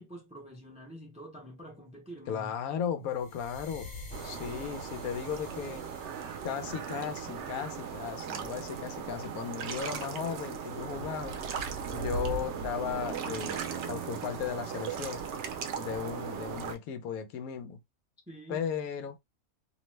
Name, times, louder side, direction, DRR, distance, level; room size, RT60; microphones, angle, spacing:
voice 1, 0.0-2.6 2.8-3.0 18.3-18.6, equal, 10° right, 0.4 m, -47 dB
voice 2, 2.3-3.9 4.2-5.8 6.4-11.4 11.9-15.2 15.8-17.8 18.5-19.2, left 8 dB, 85° left, 1.1 m, -36 dB
sound 1, 3.1-8.1, left 2 dB, 45° left, 0.7 m, -48 dB
sound 2, 4.1-16.8, right 6 dB, 65° right, 0.7 m, -37 dB
2.8 x 2.1 x 3.1 m
omnidirectional pair, 1.5 m